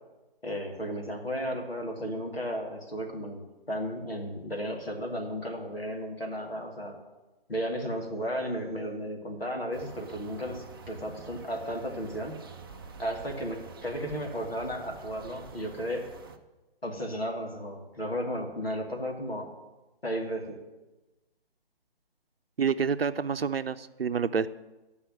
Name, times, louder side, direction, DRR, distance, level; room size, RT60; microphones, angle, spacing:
voice 1, 0.4-3.4 3.7-7.0 7.5-12.3 13.0-16.1 16.8-19.5 20.0-20.6, equal, 85° left, 1 dB, 2.5 m, -34 dB
sound 1, 9.7-16.4, right 4 dB, 25° right, 0.5 m, -47 dB
voice 2, 22.6-24.5, right 6 dB, 75° right, 13 dB, 0.6 m, -28 dB
11.5 x 5.6 x 8.0 m, 1.1 s
figure-of-eight pair, 140°, 30 cm